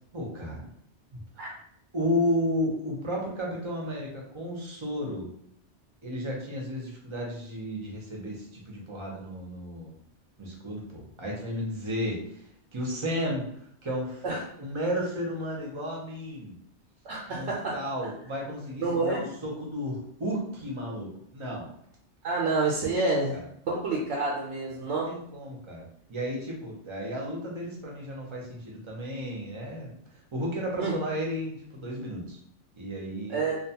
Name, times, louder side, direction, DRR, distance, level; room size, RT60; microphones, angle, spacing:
voice 1, 0.1-0.7 1.1-1.5 1.9-5.3 6.0-9.9 10.4-12.2 12.7-13.4 13.8-14.2 14.6-16.5 17.3-21.7 23.0-23.1 24.8-25.8 26.1-29.9 30.3-32.4 32.8-33.4, equal, 35° right, -2 dB, 0.6 m, -33 dB
voice 2, 17.0-17.8 18.8-19.2 22.2-23.4 23.7-25.1 30.8-30.9 33.3-33.6, right 3 dB, 90° right, -3 dB, 0.9 m, -28 dB
2.5 x 2.2 x 2.7 m, 0.66 s
omnidirectional pair, 1.1 m